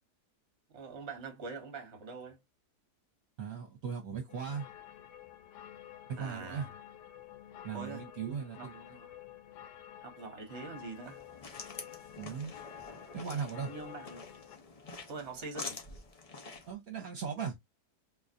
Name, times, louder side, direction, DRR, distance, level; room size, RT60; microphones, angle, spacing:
voice 1, 0.7-2.4 6.2-6.7 7.7-8.0 8.6-9.1 10.0-11.2 13.6-14.3 15.1-15.8, right 4 dB, 45° right, 1.3 m, -44 dB
voice 2, 3.4-4.7 6.1-6.7 7.6-8.8 12.2-12.5 13.1-13.7 16.7-17.6, right 6 dB, 60° right, 1.3 m, -38 dB
sound 1, 4.3-14.6, left 11 dB, 85° left, 1.2 m, -51 dB
sound 2, 11.0-16.7, left 3 dB, 60° left, 0.3 m, -47 dB
3.8 x 3.0 x 2.5 m
omnidirectional pair, 1.8 m